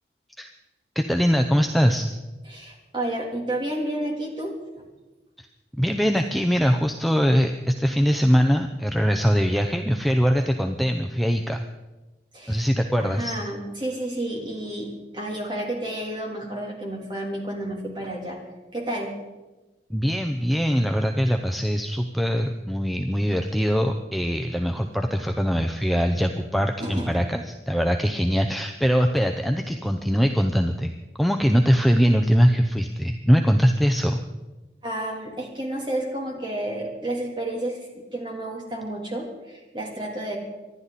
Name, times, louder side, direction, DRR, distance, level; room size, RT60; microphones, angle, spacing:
voice 1, 0.9-2.1 5.4-5.5 5.8-11.6 12.5-13.3 19.9-30.9 31.2-34.2, equal, ahead, 4 dB, 0.6 m, -22 dB
voice 2, 2.4-4.5 12.3-12.7 13.0-18.4 18.7-19.1 26.8-27.1 34.8-40.4, right 1 dB, 25° right, 0 dB, 3.1 m, -31 dB
25.5 x 11.5 x 4.1 m, 1.1 s
head